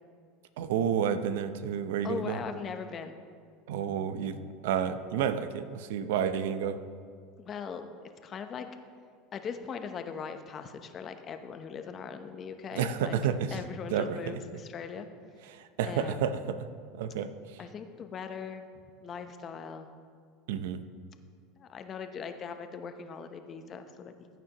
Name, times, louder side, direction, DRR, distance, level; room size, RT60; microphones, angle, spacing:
voice 1, 0.6-2.4 3.7-6.8 12.7-13.6 13.9-14.4 15.5-16.7 16.9-17.3 20.5-20.8, right 8 dB, 85° right, 11 dB, 0.6 m, -30 dB
voice 2, 2.0-3.1 7.4-7.9 8.2-8.7 9.3-13.2 13.5-15.1 15.8-16.3 17.6-18.7 19.0-19.9 21.6-24.1, left 6 dB, 30° left, 8 dB, 0.8 m, -40 dB
15.0 x 9.0 x 3.0 m, 2.1 s
supercardioid pair, 130°, 0 cm